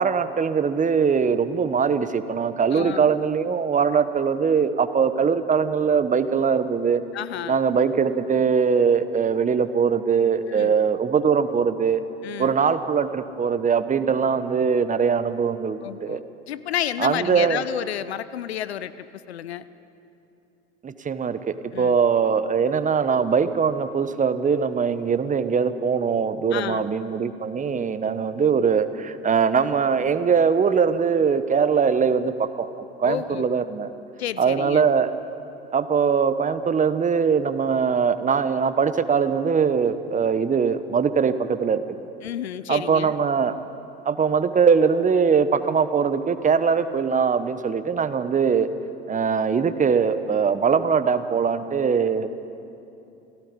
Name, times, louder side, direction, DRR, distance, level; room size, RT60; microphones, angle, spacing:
voice 1, 0.0-7.0 7.5-12.0 12.4-16.2 17.0-17.6 20.8-33.9 34.4-35.1 35.7-41.8 42.7-43.6 44.0-48.7 49.1-52.3, right 6 dB, 25° right, 12 dB, 1.1 m, -21 dB
voice 2, 2.7-3.1 7.1-7.6 10.5-10.8 12.2-12.6 15.8-19.7 21.7-22.0 26.5-26.9 33.0-33.5 34.2-34.8 42.2-43.1, left 11 dB, 80° left, 16 dB, 0.7 m, -31 dB
29.0 x 17.5 x 5.3 m, 2.8 s
hypercardioid pair, 75°, 32 cm